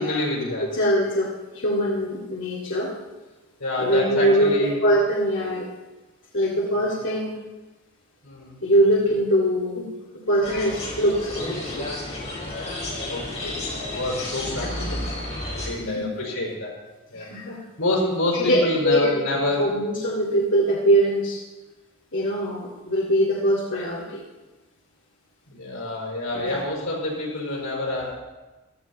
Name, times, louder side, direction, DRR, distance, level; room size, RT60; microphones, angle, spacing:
voice 1, 0.0-0.7 3.6-4.7 8.2-8.6 13.1-15.1 15.6-16.7 17.1-17.3 17.8-19.6 25.5-28.1, left 1 dB, 90° left, -2 dB, 4.7 m, -27 dB
voice 2, 0.7-2.9 3.8-5.7 6.3-7.3 8.6-11.9 14.5-15.0 15.5-16.1 17.1-17.6 18.3-19.2 19.6-21.4 22.1-24.2 26.3-26.6, equal, 60° left, -5 dB, 2.2 m, -23 dB
sound 1, 10.4-15.7, left 1 dB, 30° left, 4.3 m, -31 dB
15.0 x 13.0 x 4.1 m, 1.1 s
head